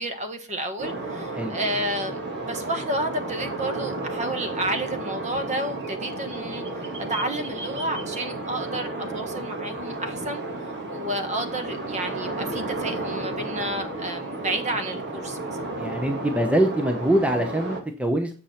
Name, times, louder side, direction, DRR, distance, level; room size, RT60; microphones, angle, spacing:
voice 1, 0.0-10.4 10.9-15.4, right 1 dB, 35° right, 1.3 m, -31 dB
sound 1, 0.8-17.8, right 2 dB, 50° right, 1.8 m, -32 dB
voice 2, 15.8-18.3, right 1 dB, 5° right, 0.8 m, -23 dB
7.5 x 6.3 x 4.3 m
head